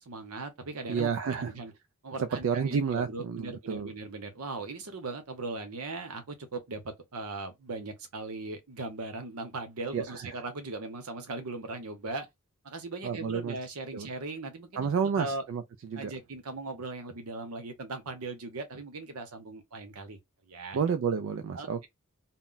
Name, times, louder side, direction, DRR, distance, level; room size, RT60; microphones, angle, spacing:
voice 1, 0.0-1.7 2.0-12.3 12.6-15.4 16.0-20.2 20.5-20.8 21.5-21.9, right 3 dB, 80° right, 0.8 m, -39 dB
voice 2, 0.9-1.5 2.2-3.9 9.9-10.4 13.0-13.6 13.9-14.1 14.7-16.1 20.7-21.9, right 6 dB, 65° right, 0.3 m, -30 dB
2.2 x 2.0 x 3.8 m
head